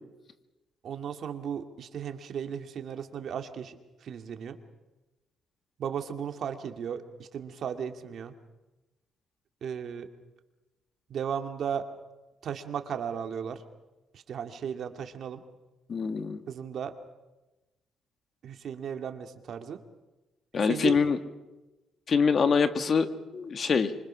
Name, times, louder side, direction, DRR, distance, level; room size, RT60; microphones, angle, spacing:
voice 1, 0.8-4.6 5.8-8.3 9.6-10.1 11.1-11.9 12.4-13.6 14.1-15.4 16.5-16.9 18.4-19.8 20.6-21.0, right 8 dB, 65° right, 7 dB, 2.3 m, -35 dB
voice 2, 15.9-16.4 20.5-21.2 22.1-23.1 23.3-23.9, left 5 dB, 45° left, 9 dB, 1.9 m, -24 dB
26.0 x 24.5 x 6.4 m, 1.1 s
cardioid pair, 90°, 0 cm